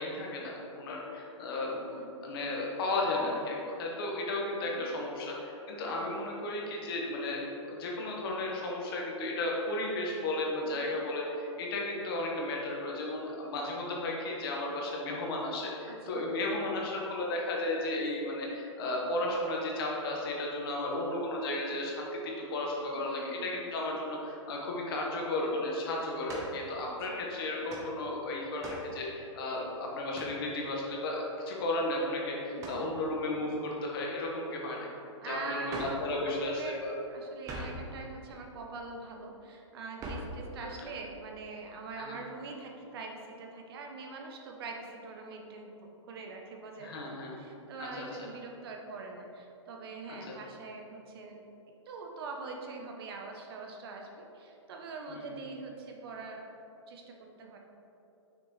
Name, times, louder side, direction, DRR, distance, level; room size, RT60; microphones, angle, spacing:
voice 1, 0.0-1.9 2.2-7.4 7.7-34.9 35.2-36.9 37.5-37.7 41.9-42.2 46.8-47.4 47.8-48.3 50.1-50.3 55.1-55.4, left 2 dB, 45° left, -2 dB, 1.4 m, -34 dB
voice 2, 4.6-5.0 5.8-6.0 10.7-10.8 15.9-16.3 22.9-23.5 26.9-27.0 32.5-32.8 35.2-36.8 37.1-47.0 47.4-51.4 51.9-56.4 56.9-57.6, right 4 dB, 50° right, 2 dB, 0.8 m, -43 dB
sound 1, 26.3-26.6 27.7-27.9 28.6-28.9 30.1-30.4 32.6-32.9 35.7-36.1 37.4-37.8 40.0-40.4, right 1 dB, 20° right, 0.9 m, -40 dB
6.1 x 6.0 x 3.2 m, 2.9 s
hypercardioid pair, 145°, 16 cm